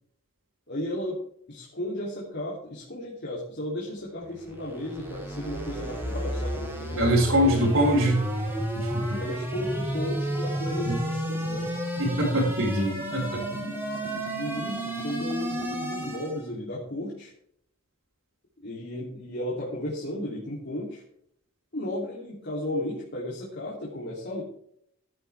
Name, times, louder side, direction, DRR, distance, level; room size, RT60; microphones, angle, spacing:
voice 1, 0.7-1.2 1.5-8.3 9.2-11.7 13.5-17.3 18.6-21.0 21.7-24.4, left 1 dB, 55° left, -4 dB, 3.0 m, -34 dB
sound 1, 4.3-16.5, right 1 dB, 10° right, 3.9 m, -32 dB
voice 2, 7.0-8.2 8.7-9.2 10.9-11.0 12.0-13.4, equal, 80° right, -6 dB, 4.7 m, -23 dB
15.5 x 10.5 x 3.5 m, 0.70 s
head